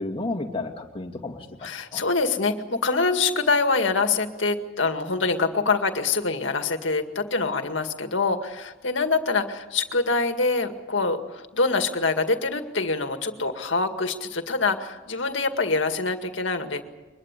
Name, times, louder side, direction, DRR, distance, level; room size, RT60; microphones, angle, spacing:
voice 1, 0.0-2.0, left 2 dB, 30° left, 4 dB, 2.4 m, -32 dB
voice 2, 1.6-16.8, left 3 dB, 70° left, 6 dB, 2.1 m, -25 dB
23.5 x 21.0 x 8.3 m, 1.1 s
head